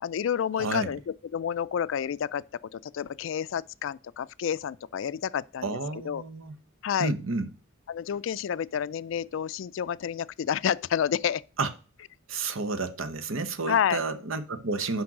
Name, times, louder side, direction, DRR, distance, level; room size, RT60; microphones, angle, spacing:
voice 1, 0.0-2.4 2.7-6.2 6.8-7.1 7.9-11.4 13.7-14.0, left 8 dB, 65° left, 0.3 m, -29 dB
voice 2, 0.6-0.9 5.6-6.6 7.0-7.5 11.6-11.7 12.3-15.0, right 3 dB, 75° right, 0.9 m, -31 dB
6.1 x 5.3 x 6.0 m
head